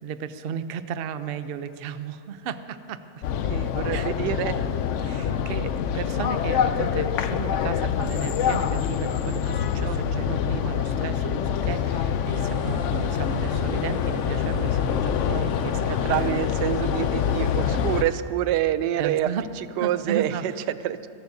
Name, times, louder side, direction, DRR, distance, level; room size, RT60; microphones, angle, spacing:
voice 1, 0.0-3.0 3.9-4.1 5.0-15.8 16.1-16.4 19.0-19.5 19.8-20.4, right 8 dB, 70° right, 11 dB, 0.5 m, -34 dB
sound 1, 3.2-18.0, left 8 dB, 70° left, 0.7 m, -25 dB
voice 2, 3.4-4.6 9.8-10.4 15.3-15.5 16.0-19.3 19.6-21.1, right 12 dB, 90° right, 14 dB, 1.2 m, -27 dB
sound 2, 12.2-18.1, equal, 50° right, 2.9 m, -41 dB
27.5 x 14.0 x 2.7 m, 2.7 s
omnidirectional pair, 1.7 m